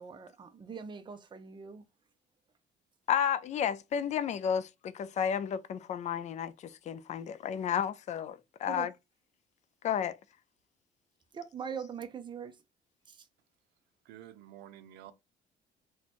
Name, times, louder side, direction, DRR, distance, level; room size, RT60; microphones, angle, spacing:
voice 1, 0.0-1.8 8.7-8.9 11.3-12.5, right 6 dB, 25° right, 0.6 m, -41 dB
voice 2, 3.1-8.9 9.8-10.2, left 8 dB, 45° left, 0.4 m, -32 dB
voice 3, 14.0-15.1, right 12 dB, 85° right, 0.5 m, -50 dB
2.9 x 2.2 x 4.2 m
cardioid pair, 110°, 17 cm